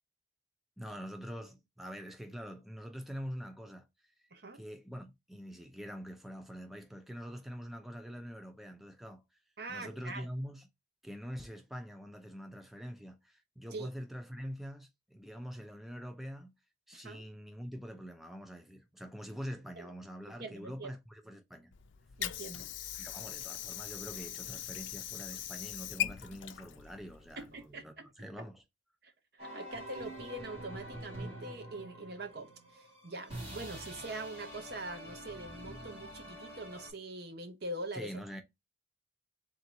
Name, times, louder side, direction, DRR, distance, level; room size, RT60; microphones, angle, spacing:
voice 1, 0.8-4.3 4.5-9.4 9.7-10.7 11.0-16.5 16.9-21.7 23.0-28.6 37.9-38.4, equal, ahead, 0.5 m, -45 dB
voice 2, 4.3-4.6 9.6-10.3 13.7-13.9 16.9-17.3 19.8-19.9 20.4-20.9 22.2-22.7 27.4-28.1 28.4-28.5 29.0-38.1, right 2 dB, 55° right, 0.9 m, -43 dB
Water / Sink (filling or washing), 21.7-27.7, left 11 dB, 80° left, 0.4 m, -40 dB
sound 1, 29.4-36.9, right 1 dB, 35° right, 1.9 m, -46 dB
3.8 x 2.7 x 4.5 m
head